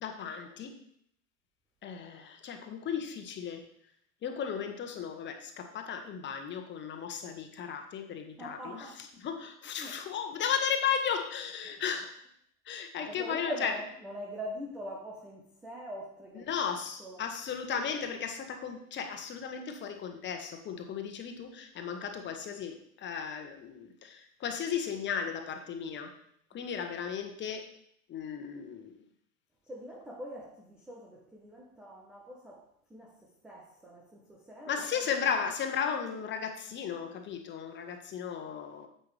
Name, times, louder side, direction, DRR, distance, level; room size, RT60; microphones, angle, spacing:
voice 1, 0.0-0.8 1.8-3.6 4.2-12.2 12.6-13.7 16.3-26.1 26.5-27.7 28.1-29.0 34.6-38.9, left 7 dB, 25° left, 6 dB, 1.2 m, -35 dB
voice 2, 8.4-9.1 9.7-10.0 11.7-11.8 13.0-17.3 26.5-26.6 29.6-34.9, equal, ahead, -1 dB, 0.3 m, -43 dB
9.6 x 8.0 x 3.3 m, 0.67 s
figure-of-eight pair, 90°, 47 cm